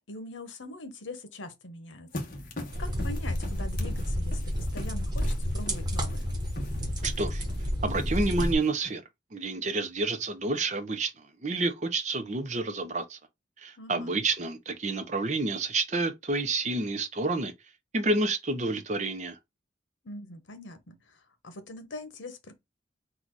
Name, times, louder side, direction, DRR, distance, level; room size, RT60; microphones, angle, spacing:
voice 1, 0.1-2.2 2.8-6.3 13.8-14.2 20.0-22.6, left 2 dB, 85° left, 1.0 m, -43 dB
sound 1, 2.1-8.9, left 1 dB, 45° left, 1.0 m, -41 dB
sound 2, 2.7-8.6, equal, 20° right, 1.1 m, -30 dB
voice 2, 7.0-7.4 7.8-9.0 9.3-11.1 11.4-13.2 13.6-17.5 17.9-19.4, right 3 dB, 40° right, 0.6 m, -29 dB
4.0 x 2.4 x 4.6 m
head